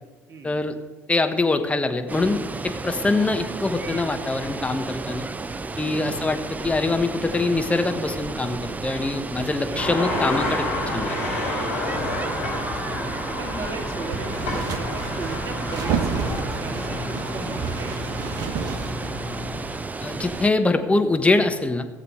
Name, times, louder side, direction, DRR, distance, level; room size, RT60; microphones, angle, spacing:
voice 1, 0.4-0.8 1.1-5.3 5.8-11.1 20.0-21.9, left 3 dB, 15° left, 7 dB, 1.3 m, -24 dB
Water, 2.1-20.5, right 3 dB, 20° right, 0.6 m, -33 dB
sound 1, 9.7-19.8, left 2 dB, 80° left, 4.4 m, -30 dB
voice 2, 9.7-10.2 12.0-13.1 13.4-18.8, right 3 dB, 40° right, 2 dB, 2.4 m, -37 dB
sound 2, 14.1-19.6, right 4 dB, 60° right, 1.4 m, -30 dB
17.0 x 7.4 x 5.0 m, 1.3 s
hypercardioid pair, 60°, 8 cm